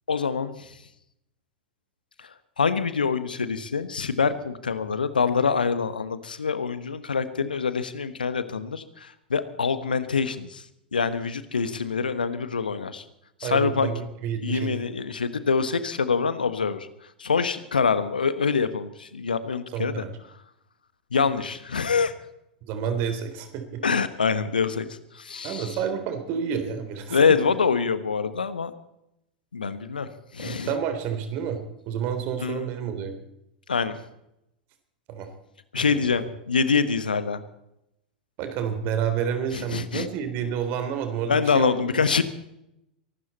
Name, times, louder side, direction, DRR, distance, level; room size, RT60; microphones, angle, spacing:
voice 1, 0.1-0.8 2.2-2.3 2.6-10.6 10.9-13.0 13.4-13.9 14.4-16.9 17.2-20.0 21.1-22.1 23.8-24.9 25.1-25.8 27.1-28.7 29.5-30.7 32.4-32.7 33.7-34.0 35.7-37.4 39.5-40.1 41.3-42.2, left 5 dB, 80° left, 13 dB, 1.3 m, -25 dB
voice 2, 13.4-14.8 19.7-20.1 22.6-23.8 25.4-27.2 30.4-31.6 31.9-33.2 35.1-35.3 36.1-36.3 38.4-42.0, right 7 dB, 45° right, 8 dB, 3.4 m, -29 dB
23.5 x 12.5 x 4.3 m, 0.83 s
figure-of-eight pair, 90°, 5 cm